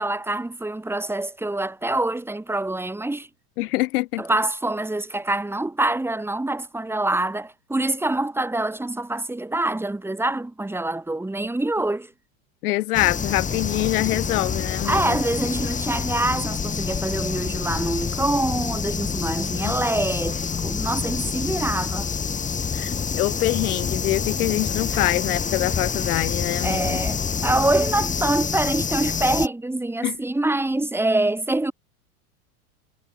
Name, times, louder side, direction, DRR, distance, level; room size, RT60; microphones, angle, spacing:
voice 1, 0.0-3.3 4.2-12.1 14.8-22.1 24.9-25.0 26.6-31.7, right 2 dB, 5° right, 5.6 m, -25 dB
voice 2, 3.6-4.2 12.6-15.2 19.6-19.7 22.7-27.0 30.0-30.2, left 18 dB, 70° left, 3.1 m, -25 dB
sound 1, 12.9-29.5, left 6 dB, 15° left, 2.5 m, -27 dB
supercardioid pair, 130°, 45 cm